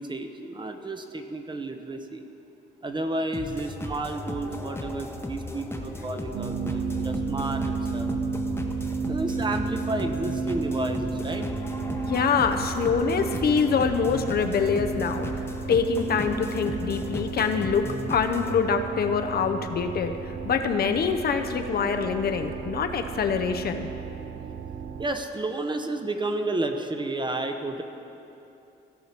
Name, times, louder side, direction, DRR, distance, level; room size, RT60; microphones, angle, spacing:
voice 1, 0.0-2.2 2.8-8.1 9.1-11.5 25.0-27.8, right 2 dB, 25° right, 6 dB, 0.8 m, -31 dB
sound 1, 3.3-18.6, left 2 dB, 10° left, 0.9 m, -36 dB
sound 2, 6.3-25.0, right 4 dB, 60° right, 0.7 m, -33 dB
voice 2, 12.0-15.3 15.7-23.9, left 6 dB, 50° left, 6 dB, 0.7 m, -25 dB
16.0 x 5.6 x 4.4 m, 2.8 s
cardioid pair, 90°, 20 cm